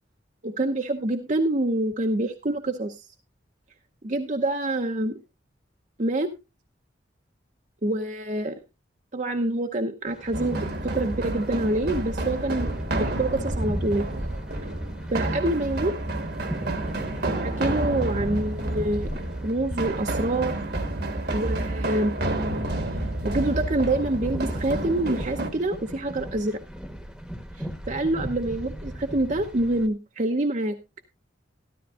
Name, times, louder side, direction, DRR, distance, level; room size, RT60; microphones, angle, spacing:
voice 1, 0.4-3.0 4.0-5.2 6.0-6.3 7.8-8.6 9.1-12.7 12.9-14.0 15.1-15.9 17.2-19.1 19.4-20.5 21.3-22.2 23.2-26.6 27.6-30.8, right 1 dB, 40° right, 5 dB, 0.8 m, -26 dB
sound 1, 10.1-29.9, equal, 5° right, 1.1 m, -37 dB
sound 2, 10.3-25.5, right 2 dB, 60° right, 1.3 m, -30 dB
13.0 x 13.0 x 2.4 m, 0.25 s
head